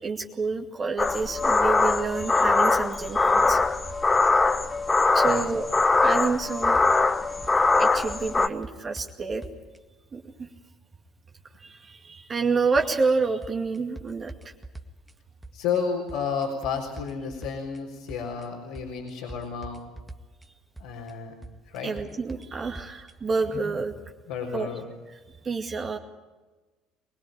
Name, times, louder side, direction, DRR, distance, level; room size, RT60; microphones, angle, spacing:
voice 1, 0.0-3.6 5.1-5.7 6.0-6.8 7.8-9.4 10.1-10.5 11.6-14.3 21.8-23.9 24.5-24.7 25.4-26.0, right 4 dB, 30° right, 3 dB, 2.2 m, -28 dB
sound 1, 1.0-8.5, left 3 dB, 20° left, 1.2 m, -22 dB
sound 2, 6.6-7.1 7.4-7.8 8.1-9.8 12.7-13.1 13.4-15.1 15.4-15.8 16.1-17.8 18.1-18.4 18.7-20.5 20.8-21.1 21.4-23.1, right 2 dB, 10° right, 1.9 m, -43 dB
voice 2, 15.5-19.8 20.8-21.3 21.7-21.9 22.8-22.9 24.3-24.9, left 6 dB, 70° left, -1 dB, 4.1 m, -31 dB
24.5 x 21.0 x 8.9 m, 1.2 s
figure-of-eight pair, 60°, 0 cm